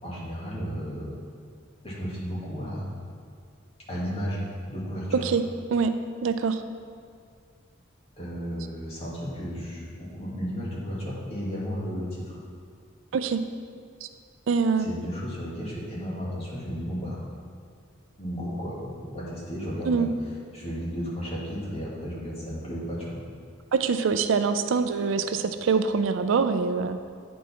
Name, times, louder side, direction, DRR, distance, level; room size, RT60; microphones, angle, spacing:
voice 1, 0.0-1.1 1.8-2.9 3.9-4.4 4.7-5.3 8.2-12.4 14.8-17.2 18.2-20.1 20.5-23.2, equal, 30° left, -7 dB, 1.9 m, -33 dB
voice 2, 6.2-6.6 13.1-13.4 14.0-14.1 14.5-15.0 19.9-20.1 23.7-27.1, right 5 dB, 75° right, 9 dB, 0.4 m, -24 dB
9.2 x 4.6 x 4.2 m, 2.3 s
head